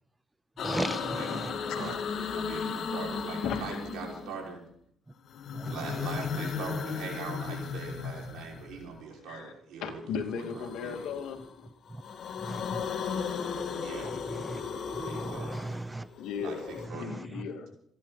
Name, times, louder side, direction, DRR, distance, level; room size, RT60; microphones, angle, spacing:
sound 1, 0.6-4.5 5.3-9.0 10.4-11.5 11.9-16.9, left 6 dB, 65° left, 2.2 m, -36 dB
voice 1, 0.6-1.5 5.5-5.8 12.4-12.8 14.4-14.6 15.1-16.1 16.9-17.2, right 2 dB, 15° right, 14 dB, 0.8 m, -36 dB
voice 2, 1.2-4.6 5.6-10.9 13.8-14.1 14.9-15.5 16.4-17.1, right 5 dB, 85° right, -1 dB, 5.6 m, -41 dB
voice 3, 1.7-2.0 3.4-3.7 9.3-9.5 9.8-11.7 16.2-16.7 16.9-17.7, left 6 dB, 90° left, 4 dB, 2.5 m, -36 dB
27.5 x 11.0 x 4.2 m, 0.67 s
cardioid pair, 90°, 0 cm